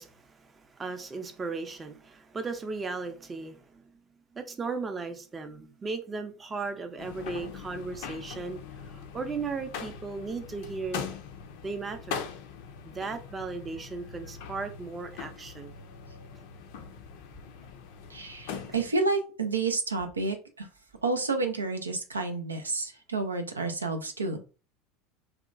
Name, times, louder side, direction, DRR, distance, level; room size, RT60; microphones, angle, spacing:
voice 1, 0.0-3.8 4.3-11.1 11.6-12.2 12.8-15.7, right 4 dB, 20° right, 0.5 m, -36 dB
sound 1, 7.0-18.9, left 7 dB, 60° left, 0.4 m, -41 dB
voice 2, 18.1-20.7 21.0-24.4, right 3 dB, 85° right, 0.4 m, -30 dB
2.8 x 2.2 x 2.5 m
figure-of-eight pair, 75°, 0 cm